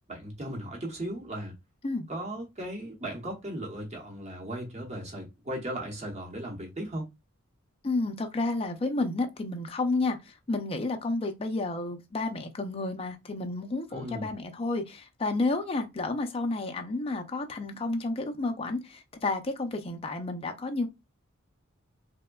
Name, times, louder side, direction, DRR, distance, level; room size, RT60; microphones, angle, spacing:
voice 1, 0.1-1.6 2.1-7.1 13.9-14.3, right 1 dB, 35° right, 0.9 m, -37 dB
voice 2, 7.8-20.9, left 2 dB, 30° left, 0.4 m, -31 dB
3.4 x 2.1 x 2.2 m
head